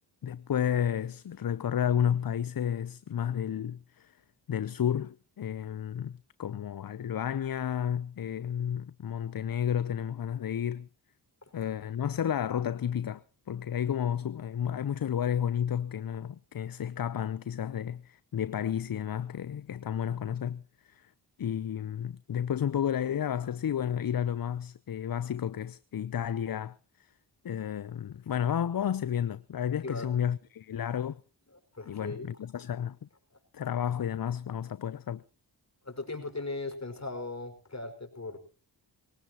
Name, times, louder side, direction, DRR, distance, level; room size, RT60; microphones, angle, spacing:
voice 1, 0.2-4.2 4.5-10.9 11.5-21.1 21.4-27.1 27.4-31.2 31.9-33.0 33.5-35.2, left 9 dB, 55° left, 0.7 m, -32 dB
voice 2, 31.7-32.3 35.8-38.4, left 2 dB, 40° left, 5.5 m, -38 dB
22.5 x 17.5 x 3.0 m
cardioid pair, 45°, 43 cm